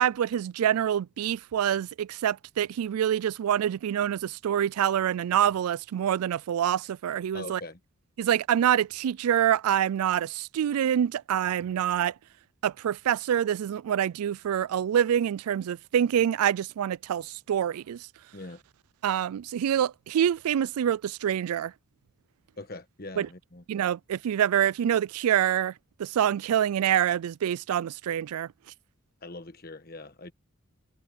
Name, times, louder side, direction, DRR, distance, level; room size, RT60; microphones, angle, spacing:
voice 1, 0.0-7.6 8.2-12.1 12.6-18.1 19.0-21.7 23.2-23.3 23.7-25.7 26.0-28.5, right 9 dB, 90° right, 0.3 m, -26 dB
voice 2, 7.3-7.8 18.3-18.6 22.6-23.6 29.2-30.3, left 2 dB, 45° left, 1.4 m, -42 dB
head